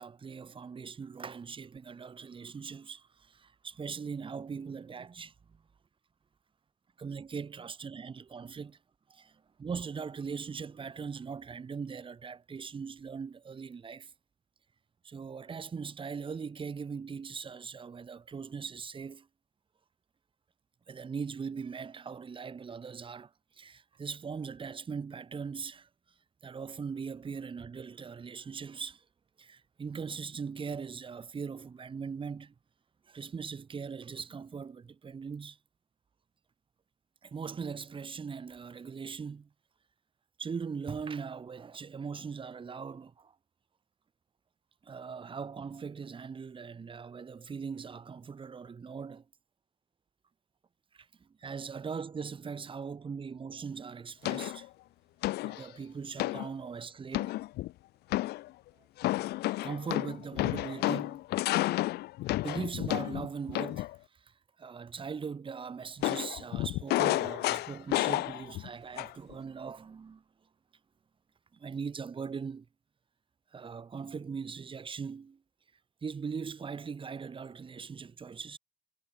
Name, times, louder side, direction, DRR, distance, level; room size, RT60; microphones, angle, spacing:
voice 1, 0.0-5.6 7.0-8.8 9.1-14.1 15.0-19.3 20.9-25.9 26.4-29.0 29.4-32.5 33.1-35.6 37.2-39.5 40.4-43.3 44.8-49.2 50.9-54.7 55.4-57.4 59.6-61.2 62.4-70.2 71.5-72.7 73.5-75.4 76.0-78.6, right 5 dB, 30° right, 2.5 m, -40 dB
sound 1, 54.2-54.7 55.2-55.6 56.2-56.5 57.1-57.7 58.1-58.5 59.0-64.0 66.0-68.7 69.0-69.3, left 17 dB, 75° left, 0.6 m, -31 dB
cardioid pair, 110°, 17 cm